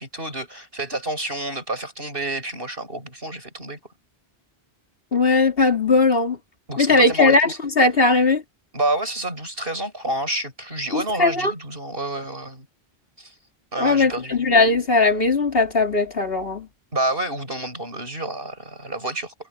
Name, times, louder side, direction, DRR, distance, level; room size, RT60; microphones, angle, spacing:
voice 1, 0.0-3.8 6.7-7.6 8.7-12.7 13.2-13.3 13.7-14.6 16.9-19.3, right 1 dB, 65° right, 8.0 m, -29 dB
voice 2, 5.1-6.4 6.8-8.4 10.9-11.5 13.8-16.7, left 3 dB, 65° left, 3.2 m, -18 dB
omnidirectional pair, 1.0 m